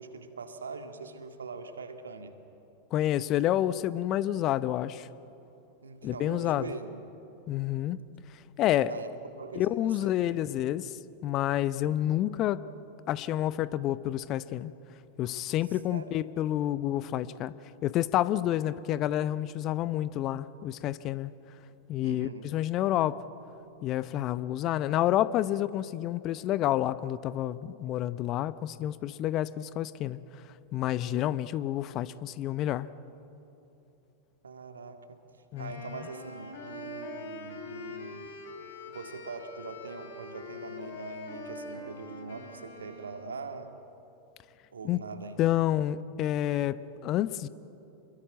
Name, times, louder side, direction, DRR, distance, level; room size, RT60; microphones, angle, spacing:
voice 1, 0.0-2.3 5.8-7.0 8.8-10.4 15.9-16.1 22.0-22.5 34.4-35.2 35.6-38.3 38.9-43.7 44.7-45.6, right 4 dB, 70° right, 6 dB, 2.1 m, -42 dB
voice 2, 2.9-5.1 6.0-6.7 7.5-8.0 8.3-8.9 9.5-12.6 13.1-14.7 15.2-17.5 17.8-21.3 21.9-23.2 23.8-30.2 30.7-32.9 35.5-35.7 44.8-45.0 45.4-47.5, left 13 dB, 35° left, 17 dB, 0.7 m, -29 dB
Wind instrument woodwind instrument, 35.5-43.6, left 3 dB, 60° left, 4.3 m, -44 dB
27.5 x 22.0 x 9.1 m, 2.9 s
figure-of-eight pair, 90°, 0 cm